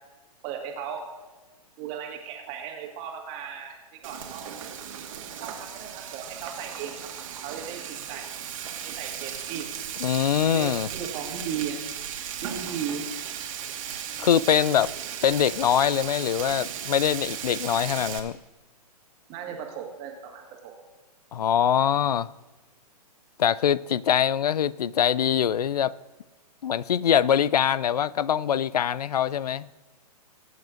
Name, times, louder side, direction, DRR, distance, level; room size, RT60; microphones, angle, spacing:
voice 1, 0.4-1.0 1.8-4.4 5.4-7.1 7.4-8.3 8.8-9.7 10.5-11.8 12.4-13.0 19.3-20.7, right 8 dB, 30° right, 1.9 m, -36 dB
Frying (food), 4.0-18.2, right 9 dB, 55° right, 1.7 m, -36 dB
voice 2, 10.0-10.9 14.2-14.9 15.2-18.4 21.3-22.3 23.4-25.9 26.6-29.6, left 9 dB, 75° left, 0.4 m, -23 dB
21.0 x 9.3 x 2.5 m
hypercardioid pair, 125°, 20 cm